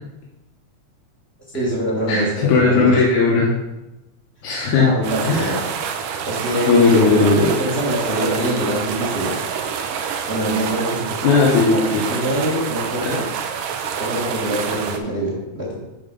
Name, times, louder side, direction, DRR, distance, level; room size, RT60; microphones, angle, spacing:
voice 1, 1.5-3.0 4.7-5.6 6.2-7.1 7.6-9.4 10.3-11.2 11.6-11.8 12.1-13.2 14.0-15.8, equal, 30° right, -4 dB, 1.4 m, -24 dB
voice 2, 2.1-3.5 4.4-4.9 5.2-5.6 6.7-7.5 11.2-12.0 13.0-13.1, left 4 dB, 85° left, -4 dB, 2.6 m, -17 dB
sound 1, 5.0-15.0, right 7 dB, 75° right, 1.4 m, -27 dB
10.5 x 4.0 x 5.2 m, 1.0 s
omnidirectional pair, 3.4 m